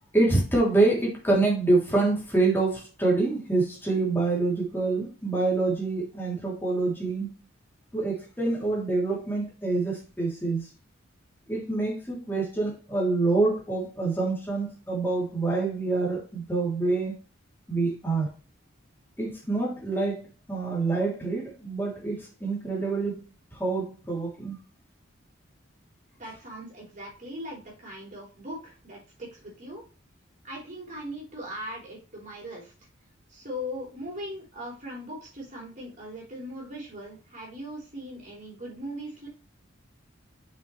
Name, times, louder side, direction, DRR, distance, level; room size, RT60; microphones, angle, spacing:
voice 1, 0.1-7.3 7.9-10.7 11.5-17.2 17.7-18.3 19.2-23.2 23.5-24.6, right 3 dB, 10° left, 2.9 m, -26 dB
voice 2, 26.2-29.8 30.4-32.7 33.3-39.3, equal, 40° right, 4.0 m, -39 dB
7.0 x 6.1 x 3.2 m
head